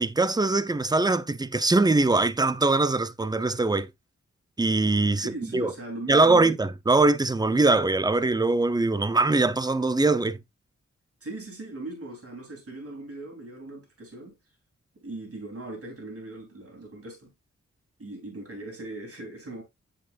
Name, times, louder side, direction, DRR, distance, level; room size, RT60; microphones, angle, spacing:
voice 1, 0.0-3.9 4.6-5.7 6.1-10.4, right 3 dB, 15° right, 0.6 m, -22 dB
voice 2, 5.2-6.6 11.2-14.4 14.9-17.3 18.0-19.6, right 2 dB, 50° right, 3.4 m, -39 dB
8.4 x 6.6 x 2.5 m
wide cardioid pair, 70°, 29 cm